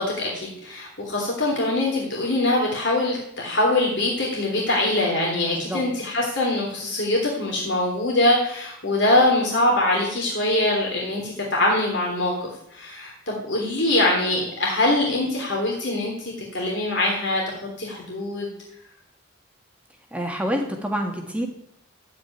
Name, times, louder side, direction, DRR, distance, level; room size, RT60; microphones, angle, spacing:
voice 1, 0.0-18.5, left 1 dB, 60° left, -3 dB, 3.4 m, -23 dB
voice 2, 5.5-5.8 20.1-21.5, equal, 5° right, 2 dB, 1.7 m, -27 dB
15.5 x 5.3 x 9.3 m, 0.75 s
head